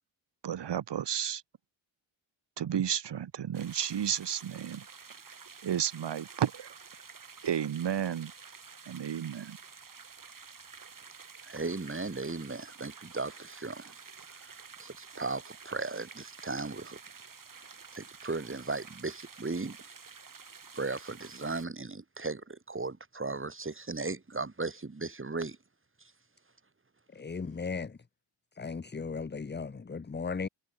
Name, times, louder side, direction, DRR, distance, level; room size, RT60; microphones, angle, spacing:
voice 1, 0.4-1.4 2.6-4.8 5.6-6.8 7.4-8.3 8.9-9.6, right 9 dB, 60° right, 2.5 m, -32 dB
sound 1, 3.5-21.7, right 5 dB, 45° right, 6.6 m, -50 dB
voice 2, 11.4-13.9 14.4-14.5 14.8-17.0 17.9-19.8 20.7-25.6, right 3 dB, 25° right, 6.9 m, -36 dB
voice 3, 27.1-28.0 28.5-30.5, left 5 dB, 20° left, 1.1 m, -36 dB
cardioid pair, 65°, 47 cm